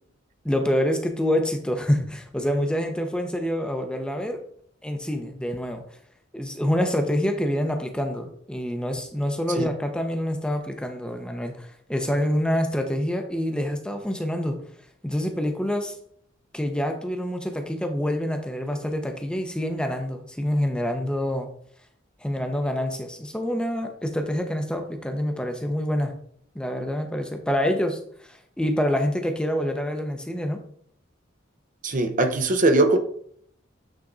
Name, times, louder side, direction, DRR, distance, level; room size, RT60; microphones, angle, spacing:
voice 1, 0.4-4.4 4.8-5.8 6.3-14.6 15.0-16.0 16.5-21.5 22.2-26.1 26.5-28.0 28.3-30.6, equal, 5° left, 5 dB, 0.8 m, -26 dB
voice 2, 31.8-33.0, right 2 dB, 45° right, 7 dB, 0.8 m, -20 dB
8.7 x 3.7 x 3.9 m, 0.63 s
head